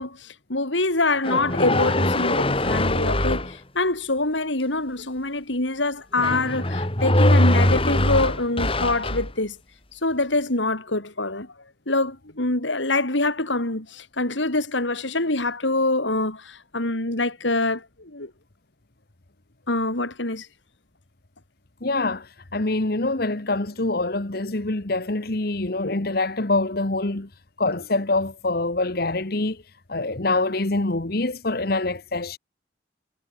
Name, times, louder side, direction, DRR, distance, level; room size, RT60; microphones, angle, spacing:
voice 1, 0.0-9.6 9.9-11.5 11.9-18.3 19.7-20.5, left 2 dB, 80° left, 4.2 m, -25 dB
sound 1, 1.2-3.5 6.2-9.3, left 1 dB, 30° left, 3.5 m, -22 dB
voice 2, 21.8-27.3 27.6-29.6 29.9-32.4, left 2 dB, 55° left, 1.5 m, -25 dB
head